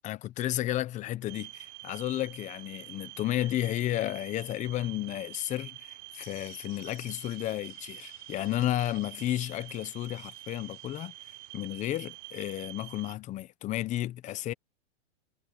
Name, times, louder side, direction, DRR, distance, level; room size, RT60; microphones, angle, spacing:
voice 1, 0.0-11.1 11.5-14.5, left 14 dB, 20° left, 0.7 m, -32 dB
sound 1, 1.3-13.2, right 23 dB, 40° right, 0.7 m, -47 dB
sound 2, 6.1-12.5, left 19 dB, 60° left, 6.7 m, -58 dB
supercardioid pair, 150°, 35 cm